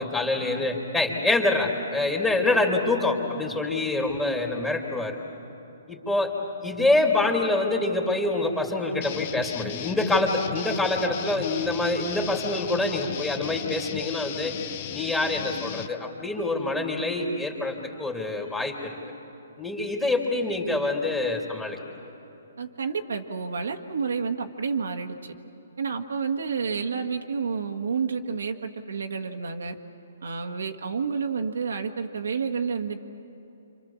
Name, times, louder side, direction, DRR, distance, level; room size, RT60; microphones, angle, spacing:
voice 1, 0.0-5.2 5.9-6.3 6.6-14.5 14.9-19.0 19.6-21.8, left 2 dB, 10° left, 1 dB, 2.9 m, -26 dB
sound 1, 9.0-15.9, left 10 dB, 45° left, 1.0 m, -36 dB
voice 2, 22.6-25.3 25.8-29.7 30.2-33.0, right 5 dB, 80° right, 5 dB, 1.6 m, -30 dB
28.5 x 25.5 x 7.3 m, 2.9 s
hypercardioid pair, 140°, 0 cm